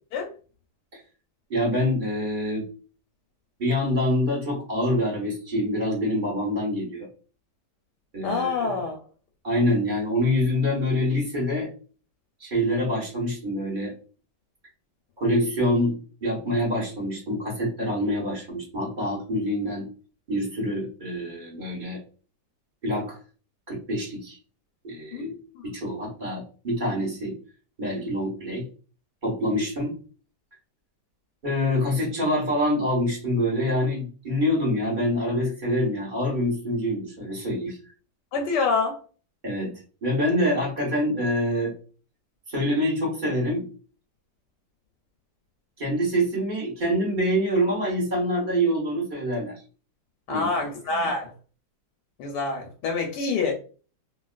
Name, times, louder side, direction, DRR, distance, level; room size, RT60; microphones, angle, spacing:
voice 1, 1.5-2.7 3.6-7.1 8.1-8.8 9.4-11.7 12.4-13.9 15.2-19.9 20.3-22.0 22.8-23.2 23.7-24.4 24.8-25.3 25.6-27.4 27.8-28.6 29.2-30.0 31.4-37.8 39.4-39.7 40.0-41.7 42.5-43.7 45.8-49.6 50.3-50.5 51.0-51.1, equal, 35° right, -3 dB, 1.1 m, -26 dB
voice 2, 8.2-9.0 25.1-25.6 25.9-26.1 38.3-39.0 50.3-51.3 52.2-53.5, left 4 dB, 80° left, 2 dB, 1.2 m, -27 dB
3.0 x 2.7 x 2.4 m, 0.38 s
omnidirectional pair, 1.8 m